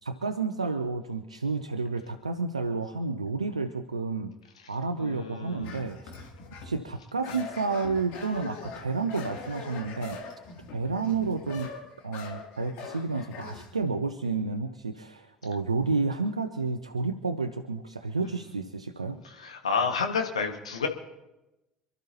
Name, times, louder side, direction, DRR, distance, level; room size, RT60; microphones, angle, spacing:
voice 1, 0.0-4.3 4.7-6.1 6.6-10.2 10.7-11.7 12.0-19.2, right 4 dB, 85° right, 9 dB, 0.6 m, -30 dB
voice 2, 5.0-5.8 7.3-7.4 19.2-20.9, left 5 dB, 80° left, 4 dB, 1.7 m, -30 dB
sound 1, 5.6-6.8 7.2-13.7, left 4 dB, 60° left, 2.9 m, -42 dB
27.5 x 12.5 x 2.9 m, 1.0 s
figure-of-eight pair, 60°, 3 cm